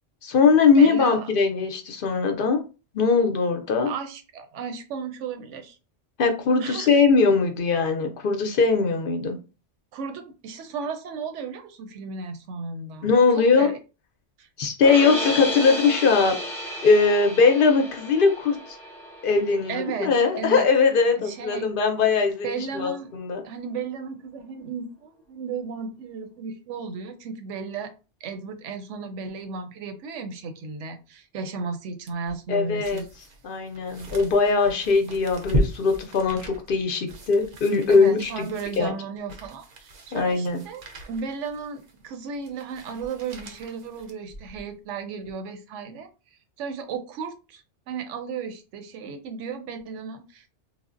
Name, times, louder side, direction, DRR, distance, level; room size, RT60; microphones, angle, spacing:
voice 1, 0.2-2.6 2.9-3.9 6.2-9.4 13.0-13.7 14.6-16.4 16.8-18.6 19.2-23.4 32.5-33.0 33.4-38.5 38.8-38.9 40.1-40.6, left 4 dB, 60° left, 5 dB, 0.6 m, -20 dB
voice 2, 0.8-1.3 3.9-5.8 6.6-7.0 9.9-13.1 13.3-13.8 14.4-14.5 15.1-15.3 19.7-20.7 21.2-21.7 22.4-23.1 23.4-27.9 28.2-33.1 37.9-40.8 41.1-46.1 46.6-50.5, right 5 dB, 80° right, 8 dB, 0.9 m, -34 dB
sound 1, 14.8-21.0, left 1 dB, 5° left, 0.3 m, -33 dB
sound 2, 32.1-44.7 45.2-45.3, equal, 55° right, 0.5 m, -35 dB
3.3 x 2.0 x 2.4 m, 0.32 s
omnidirectional pair, 1.2 m